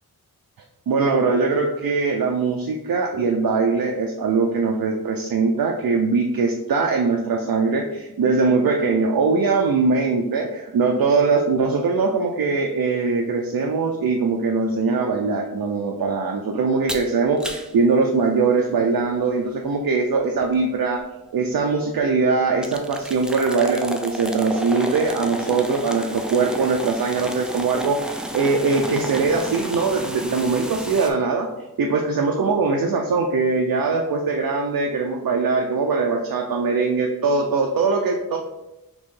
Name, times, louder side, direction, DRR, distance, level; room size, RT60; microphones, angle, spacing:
voice 1, 0.9-21.0 21.3-31.5 31.8-38.4, right 4 dB, 75° right, 1 dB, 0.5 m, -21 dB
sound 1, 16.9-17.1 17.4-17.7 20.4-20.5 21.0-21.1 22.6-31.1, right 1 dB, ahead, 0.3 m, -31 dB
4.3 x 3.1 x 3.1 m, 0.96 s
wide cardioid pair, 80°, 35 cm